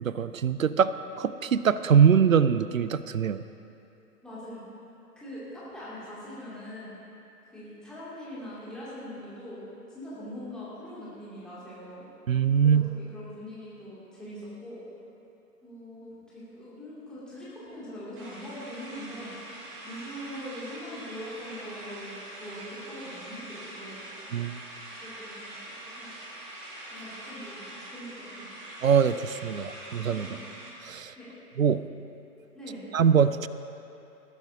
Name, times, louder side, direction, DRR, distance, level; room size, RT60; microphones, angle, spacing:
voice 1, 0.0-3.4 12.3-12.9 24.3-24.6 28.8-30.3 30.8-31.1 31.6-31.9 32.9-33.5, right 7 dB, 60° right, 14 dB, 0.6 m, -23 dB
voice 2, 4.2-4.6 5.2-7.0 7.5-12.0 12.6-14.8 15.6-19.3 19.8-24.0 25.0-26.1 26.9-28.5 30.2-30.4 31.2-31.3 32.5-32.8, equal, ahead, -11 dB, 2.4 m, -42 dB
sound 1, 18.2-30.7, right 1 dB, 35° right, 2.2 m, -44 dB
19.5 x 12.5 x 2.7 m, 2.8 s
figure-of-eight pair, 130°, 47 cm